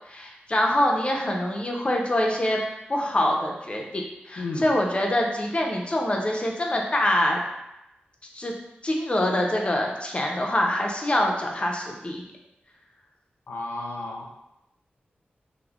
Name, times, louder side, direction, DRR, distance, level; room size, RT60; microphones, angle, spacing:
voice 1, 0.1-2.6 2.9-7.4 8.3-8.5 8.8-12.2, left 1 dB, 30° left, 0 dB, 0.5 m, -25 dB
voice 2, 13.5-14.3, left 2 dB, 85° left, -1 dB, 0.4 m, -32 dB
3.1 x 2.0 x 2.3 m, 0.89 s
wide cardioid pair, 70°, 4 cm